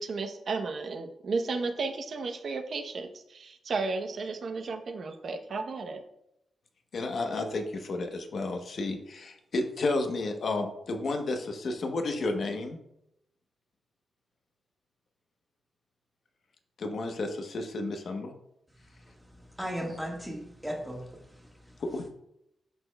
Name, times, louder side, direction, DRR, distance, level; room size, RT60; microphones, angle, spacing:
voice 1, 0.0-6.0, right 3 dB, 55° right, 6 dB, 0.8 m, -33 dB
voice 2, 6.9-12.8 16.8-18.3 21.8-22.1, left 2 dB, 55° left, 5 dB, 0.9 m, -32 dB
voice 3, 18.9-21.8, equal, ahead, -1 dB, 1.5 m, -38 dB
12.0 x 4.3 x 2.3 m, 0.80 s
wide cardioid pair, 130°, 0 cm